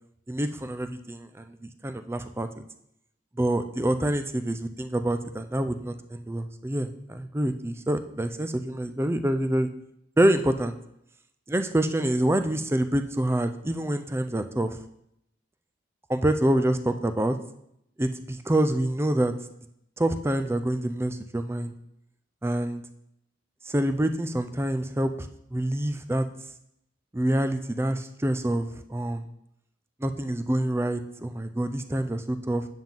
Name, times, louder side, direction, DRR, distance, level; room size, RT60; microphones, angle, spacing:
voice 1, 0.3-2.5 3.4-9.7 10.2-10.7 11.5-14.8 16.1-17.4 18.0-19.3 20.0-21.7 22.4-22.8 23.6-26.3 27.1-29.2 30.0-32.7, right 1 dB, 15° right, 9 dB, 0.5 m, -26 dB
9.2 x 7.3 x 3.9 m, 0.76 s
head